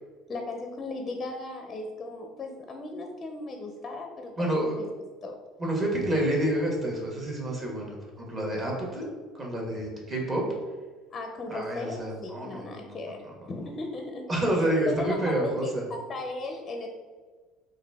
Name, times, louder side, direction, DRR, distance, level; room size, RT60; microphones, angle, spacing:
voice 1, 0.3-4.3 4.7-4.9 5.2-5.4 11.1-13.2 13.5-14.3 14.9-15.3 15.6-16.9, left 2 dB, 30° left, 4 dB, 0.5 m, -36 dB
voice 2, 4.4-4.7 5.6-9.0 9.4-10.4 11.5-13.5 14.3-15.8, right 1 dB, 30° right, -2 dB, 1.2 m, -29 dB
4.0 x 2.5 x 3.4 m, 1.4 s
cardioid pair, 115°, 0 cm